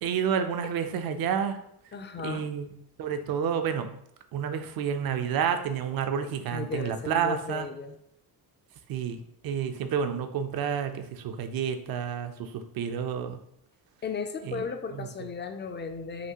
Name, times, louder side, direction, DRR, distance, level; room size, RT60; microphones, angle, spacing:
voice 1, 0.0-1.6 2.2-2.7 3.0-3.9 4.3-7.7 8.9-9.2 9.4-13.4 14.4-14.6 14.9-15.1, right 7 dB, 65° right, 8 dB, 0.6 m, -29 dB
voice 2, 1.9-2.5 6.5-8.0 14.0-16.3, left 5 dB, 30° left, 7 dB, 0.4 m, -35 dB
5.8 x 2.6 x 2.9 m, 0.70 s
cardioid pair, 125°, 40 cm